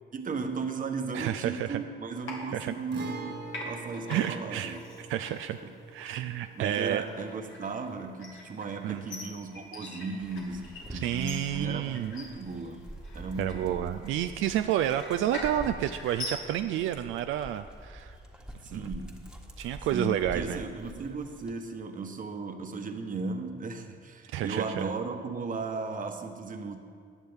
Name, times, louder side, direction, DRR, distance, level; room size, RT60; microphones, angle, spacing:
voice 1, 0.1-4.8 5.6-5.7 6.5-12.9 13.1-13.9 18.6-19.2 19.9-26.8, right 4 dB, 45° right, 6 dB, 1.1 m, -36 dB
voice 2, 1.1-1.8 2.5-2.7 4.1-4.8 5.1-5.6 5.9-7.0 8.8-9.1 10.9-12.1 13.4-18.2 18.7-18.9 19.6-20.6 24.3-24.9, right 11 dB, 80° right, 9 dB, 0.4 m, -30 dB
sound 1, 2.2-3.2 3.5-16.9, left 2 dB, 75° left, 2.5 m, -44 dB
Guitar, 2.9-10.5 10.8-10.9 12.9-13.0, right 3 dB, 65° right, 1.6 m, -45 dB
Dog, 10.2-21.5, equal, 5° right, 1.4 m, -46 dB
15.5 x 10.0 x 3.6 m, 2.3 s
cardioid pair, 90°, 20 cm